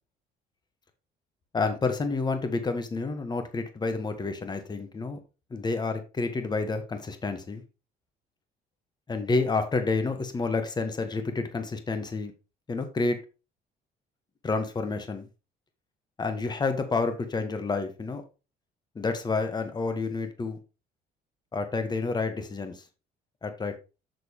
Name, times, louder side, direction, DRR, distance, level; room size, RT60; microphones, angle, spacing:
voice 1, 1.5-5.2 5.5-7.6 9.1-12.3 12.7-13.2 14.4-15.3 16.2-18.2 18.9-20.6 21.5-22.8 23.4-23.8, left 3 dB, 25° left, 8 dB, 1.4 m, -29 dB
6.5 x 6.5 x 3.5 m, 0.31 s
cardioid pair, 110°, 17 cm